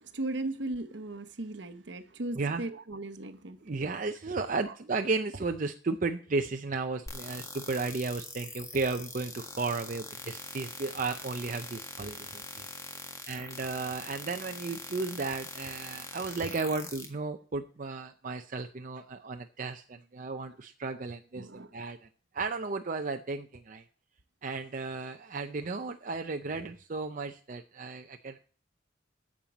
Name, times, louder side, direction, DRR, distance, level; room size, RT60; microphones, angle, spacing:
voice 1, 0.1-3.6 21.4-21.7, right 2 dB, 65° right, 1.0 m, -37 dB
voice 2, 3.6-12.7 13.3-22.0 22.3-23.8 24.4-28.4, right 3 dB, 45° right, 0.6 m, -34 dB
sound 1, 7.1-17.1, left 3 dB, 15° left, 1.6 m, -43 dB
9.1 x 7.4 x 7.1 m
head